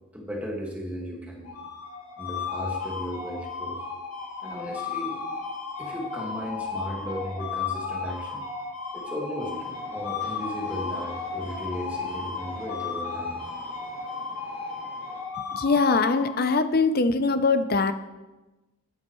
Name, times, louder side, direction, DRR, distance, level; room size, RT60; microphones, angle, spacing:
voice 1, 0.1-1.6 2.2-3.8 4.4-5.2 5.8-8.4 8.9-9.5 9.9-13.4, equal, 5° right, -2 dB, 1.8 m, -36 dB
sound 1, 1.4-16.7, left 5 dB, 80° left, 1.9 m, -34 dB
Train, 9.5-15.2, equal, 10° left, 2.7 m, -49 dB
voice 2, 15.5-17.9, left 4 dB, 45° left, 11 dB, 0.6 m, -22 dB
13.0 x 10.5 x 3.1 m, 1.1 s
head